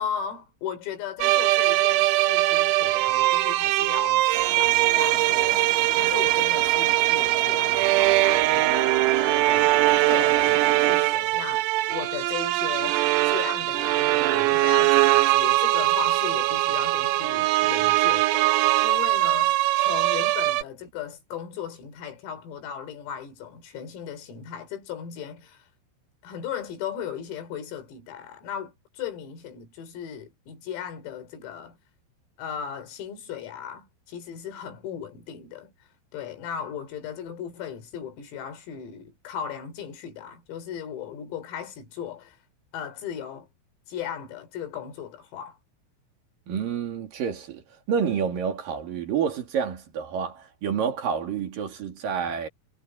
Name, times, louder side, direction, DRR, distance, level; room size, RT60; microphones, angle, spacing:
voice 1, 0.0-25.7 26.2-31.8 32.4-35.7 36.1-42.4 42.7-43.5 43.9-45.6, left 8 dB, 90° left, 6.5 m, -37 dB
sound 1, 1.2-20.6, right 17 dB, 85° right, 3.8 m, -21 dB
sound 2, 4.3-11.0, right 7 dB, 65° right, 6.1 m, -34 dB
voice 2, 46.5-52.5, right 7 dB, 50° right, 3.7 m, -29 dB
omnidirectional pair, 5.9 m